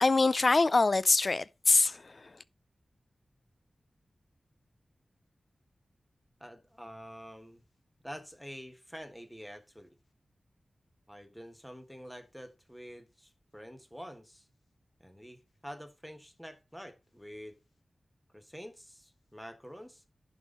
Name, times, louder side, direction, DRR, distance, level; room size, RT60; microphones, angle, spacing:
voice 1, 0.0-2.3, left 3 dB, 40° left, 0.5 m, -24 dB
voice 2, 6.4-7.6 8.0-9.9 11.1-14.5 15.0-17.6 18.3-20.0, equal, ahead, 1.5 m, -47 dB
11.0 x 5.5 x 3.9 m
wide cardioid pair, 110°, 0 cm